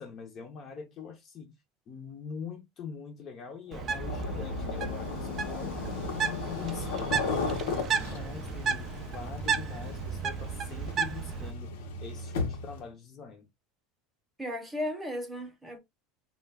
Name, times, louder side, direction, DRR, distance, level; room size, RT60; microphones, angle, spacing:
voice 1, 0.0-1.5 1.9-5.8 6.3-7.3 7.6-13.5, left 5 dB, 35° left, 0.6 m, -44 dB
sound 1, 3.7-12.8, left 4 dB, 85° left, 0.7 m, -35 dB
Bird, 3.7-11.5, right 6 dB, 35° right, 0.3 m, -34 dB
voice 2, 14.4-15.8, left 1 dB, 5° right, 0.8 m, -35 dB
2.2 x 2.2 x 3.3 m
supercardioid pair, 140°, 0 cm